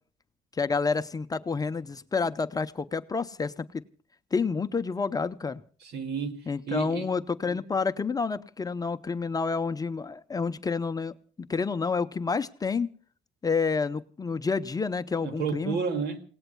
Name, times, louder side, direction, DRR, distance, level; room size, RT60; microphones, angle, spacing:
voice 1, 0.5-3.8 4.3-5.6 6.5-12.9 13.4-15.8, left 4 dB, 20° left, 0.6 m, -29 dB
voice 2, 5.8-6.4 6.7-7.1 15.2-16.2, right 6 dB, 75° right, 2.2 m, -31 dB
29.5 x 18.0 x 2.2 m
cardioid pair, 110°, 17 cm